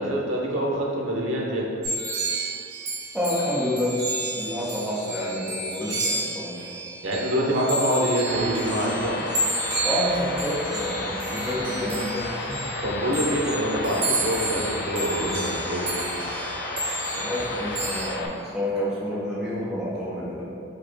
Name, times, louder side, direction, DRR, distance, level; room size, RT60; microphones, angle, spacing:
voice 1, 0.0-1.7 7.0-9.2 12.8-16.1, equal, 80° right, -2 dB, 0.8 m, -25 dB
sound 1, 1.8-18.1, right 2 dB, 50° right, 1.2 m, -31 dB
voice 2, 3.1-4.0 4.3-6.7 9.8-12.6 17.1-20.4, left 1 dB, 5° right, -8 dB, 0.6 m, -29 dB
sound 2, 8.3-18.3, left 2 dB, 55° left, 0.4 m, -32 dB
4.9 x 2.2 x 4.4 m, 2.5 s
head